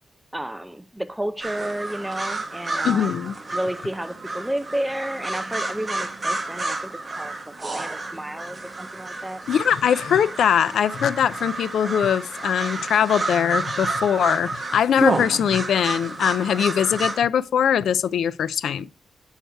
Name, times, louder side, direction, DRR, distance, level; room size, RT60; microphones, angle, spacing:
voice 1, 0.3-3.2 3.5-7.4 7.6-9.4, right 1 dB, 5° right, 0.5 m, -31 dB
sound 1, 1.4-17.2, right 2 dB, 25° right, 1.1 m, -30 dB
voice 2, 2.8-3.3 9.5-18.9, left 8 dB, 85° left, 0.3 m, -21 dB
6.4 x 6.4 x 4.5 m
wide cardioid pair, 145°, 0 cm